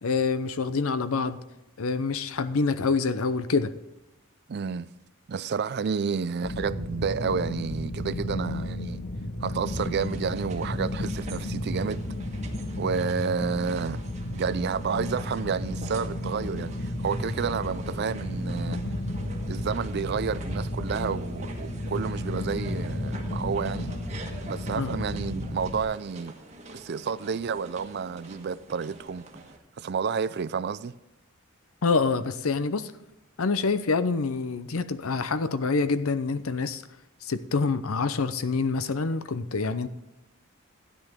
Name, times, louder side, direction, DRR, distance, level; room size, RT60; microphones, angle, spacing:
voice 1, 0.0-1.4 1.8-3.7 24.8-24.9 31.8-32.9 33.4-36.8 37.2-39.9, left 4 dB, 75° left, 0.7 m, -26 dB
voice 2, 4.5-4.9 5.3-9.0 9.4-12.0 12.8-14.0 14.3-18.8 19.5-23.9 24.5-26.3 26.7-29.2 29.8-30.9, right 6 dB, 50° right, 0.4 m, -30 dB
sound 1, 6.4-25.8, left 1 dB, 45° left, 1.1 m, -33 dB
sound 2, 9.7-29.6, right 2 dB, 30° right, 1.3 m, -45 dB
13.5 x 9.9 x 3.6 m
head